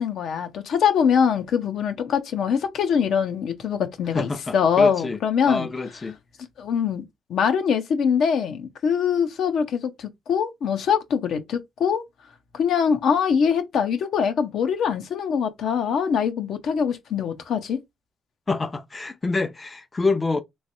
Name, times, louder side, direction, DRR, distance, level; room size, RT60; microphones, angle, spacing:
voice 1, 0.0-5.7 6.6-12.0 12.5-17.8, left 7 dB, 70° left, 0.7 m, -23 dB
voice 2, 4.1-5.2 5.4-6.2 18.5-20.4, left 3 dB, 25° left, 0.4 m, -26 dB
3.2 x 3.1 x 2.6 m
cardioid pair, 90°, 0 cm